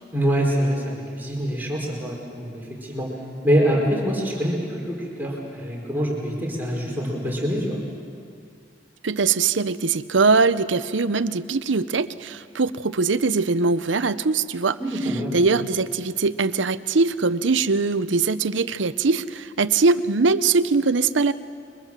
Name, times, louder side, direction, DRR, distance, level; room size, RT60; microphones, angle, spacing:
voice 1, 0.1-3.1 3.4-7.8 14.8-15.4, equal, 10° right, -3 dB, 4.5 m, -25 dB
voice 2, 9.0-14.8 15.3-21.3, right 4 dB, 90° right, 14 dB, 0.7 m, -21 dB
30.0 x 23.0 x 7.4 m, 2.2 s
head